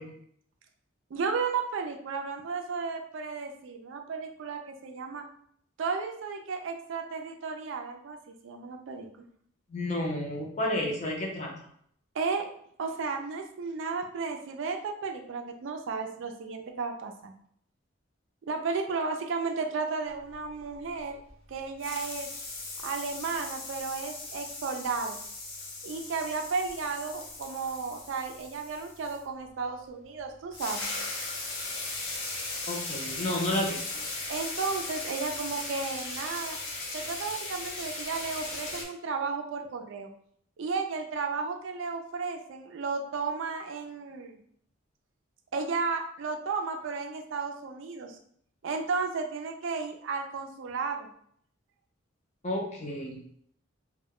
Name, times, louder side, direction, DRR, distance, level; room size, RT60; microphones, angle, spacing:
voice 1, 1.1-5.3 5.8-9.1 12.1-12.5 12.8-17.3 18.5-21.2 21.5-22.3 22.8-25.2 25.8-30.9 32.5-32.6 34.3-36.6 36.9-40.1 40.6-44.4 45.5-48.2 48.6-51.1, right 4 dB, 65° right, 4 dB, 0.4 m, -33 dB
voice 2, 9.7-11.5 32.7-34.0 52.4-53.2, left 1 dB, 35° left, -1 dB, 0.5 m, -31 dB
sound 1, 20.3-21.5 21.8-29.2 30.2-30.3 30.5-38.8, left 2 dB, 75° left, 0.7 m, -38 dB
2.1 x 2.1 x 3.6 m, 0.65 s
head